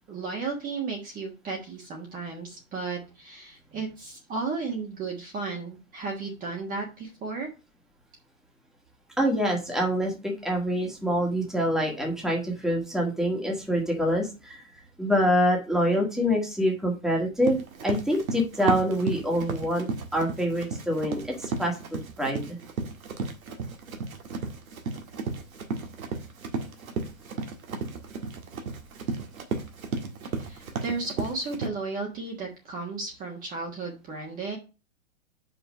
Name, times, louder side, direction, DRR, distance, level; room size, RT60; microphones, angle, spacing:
voice 1, 0.1-7.5 30.4-34.6, right 4 dB, 20° right, 0 dB, 1.4 m, -34 dB
voice 2, 9.2-14.6 15.0-19.9 20.1-22.6, equal, ahead, -1 dB, 1.6 m, -26 dB
Run, 17.4-31.7, right 4 dB, 90° right, 1.7 m, -34 dB
5.4 x 4.8 x 6.3 m, 0.30 s
hypercardioid pair, 145°, 41 cm